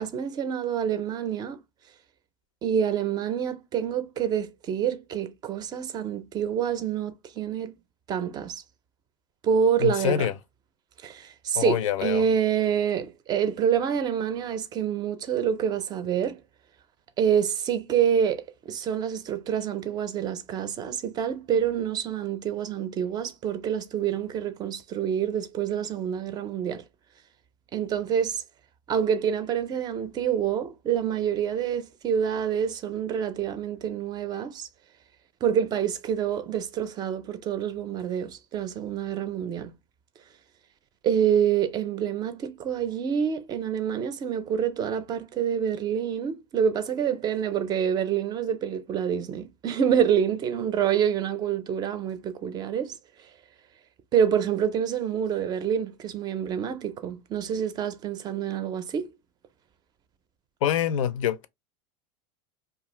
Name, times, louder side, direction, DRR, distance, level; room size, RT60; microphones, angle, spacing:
voice 1, 0.0-1.6 2.6-7.8 8.1-8.6 9.4-10.3 11.0-16.4 17.2-26.8 27.7-28.4 28.9-34.7 35.4-39.7 41.0-53.0 54.1-59.1, right 8 dB, 25° right, 0.4 m, -27 dB
voice 2, 9.8-10.3 11.5-12.2 60.6-61.5, left 10 dB, 80° left, 0.5 m, -25 dB
2.6 x 2.4 x 2.9 m
supercardioid pair, 140°, 16 cm